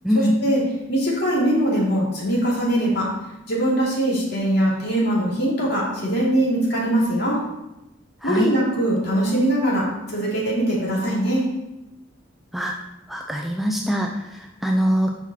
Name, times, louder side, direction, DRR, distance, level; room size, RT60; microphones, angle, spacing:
voice 1, 0.1-0.6 0.9-3.1 3.5-7.4 8.2-11.4, right 1 dB, 55° left, -5 dB, 2.6 m, -22 dB
voice 2, 8.2-8.5 12.5-12.7 13.1-15.1, equal, ahead, 1 dB, 0.4 m, -23 dB
7.3 x 5.7 x 4.2 m, 0.92 s
head